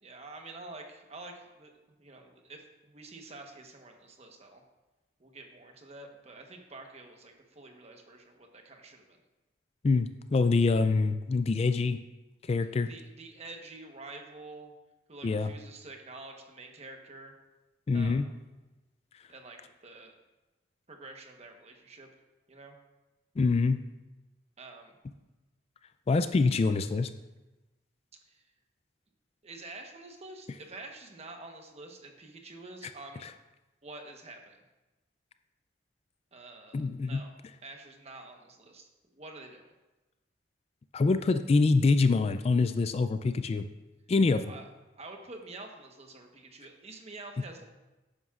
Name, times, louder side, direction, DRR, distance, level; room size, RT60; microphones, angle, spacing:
voice 1, 0.0-4.6 5.2-9.2 12.6-14.7 15.1-17.3 17.9-18.3 19.3-20.1 20.9-22.1 22.5-22.8 24.6-24.9 28.3-28.4 29.4-33.3 33.8-34.6 36.3-37.3 37.6-39.7 44.5-44.7 45.0-47.6, right 2 dB, 35° right, 3 dB, 1.1 m, -48 dB
voice 2, 9.8-12.0 12.5-12.9 15.2-15.5 17.9-18.3 23.4-23.8 26.1-27.1 36.7-37.2 40.9-43.6 44.1-44.5, left 3 dB, 35° left, 10 dB, 0.3 m, -25 dB
11.5 x 9.2 x 2.4 m, 1.1 s
head